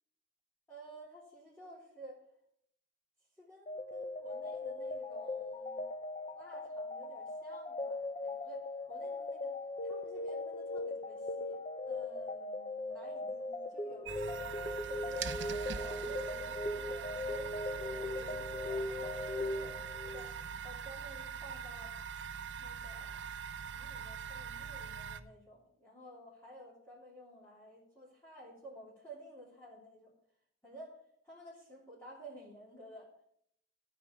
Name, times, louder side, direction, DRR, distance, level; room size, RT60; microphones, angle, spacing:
voice 1, 0.7-2.2 3.4-5.8 6.3-11.6 11.9-14.5 14.9-20.3 20.6-21.9 22.6-23.2 23.7-30.1 30.6-31.0 31.2-33.1, right 1 dB, 10° left, -7 dB, 2.9 m, -53 dB
sound 1, 3.7-20.3, left 2 dB, 30° left, 0.7 m, -39 dB
sound 2, 14.0-25.2, right 7 dB, 65° right, 0.7 m, -42 dB
13.0 x 5.0 x 8.0 m, 0.70 s
head